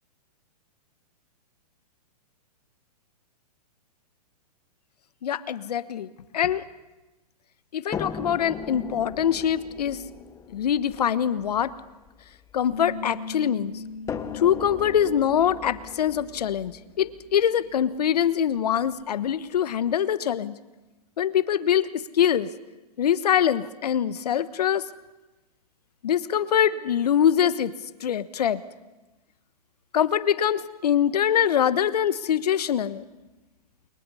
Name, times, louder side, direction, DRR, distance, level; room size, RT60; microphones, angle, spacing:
voice 1, 5.2-6.1 6.3-6.6 7.7-10.0 10.5-11.7 12.5-13.8 14.3-20.5 21.2-22.5 23.0-24.8 26.0-27.7 28.0-28.6 29.9-33.0, left 9 dB, 75° left, 14 dB, 1.3 m, -24 dB
sound 1, 7.9-13.1 14.1-18.0 19.0-19.1 19.5-19.6, left 6 dB, 15° left, 1.1 m, -39 dB
Bass guitar, 12.7-17.0 17.3-18.9, left 3 dB, 90° left, 2.4 m, -41 dB
29.5 x 23.0 x 5.6 m, 1.1 s
hypercardioid pair, 125°, 20 cm